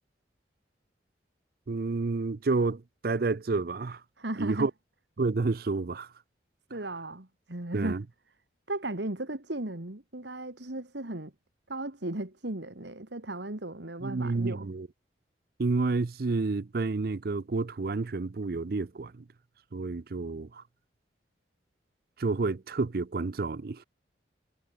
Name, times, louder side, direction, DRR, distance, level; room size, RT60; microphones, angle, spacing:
voice 1, 1.7-4.0 4.4-4.7 5.2-6.1 7.7-8.0 14.0-14.9 15.6-19.2 19.7-20.6 22.2-23.8, right 3 dB, 55° right, 0.5 m, -30 dB
voice 2, 4.2-4.7 6.7-8.0 8.7-11.3 11.7-14.7, right 1 dB, 70° right, 2.2 m, -36 dB
head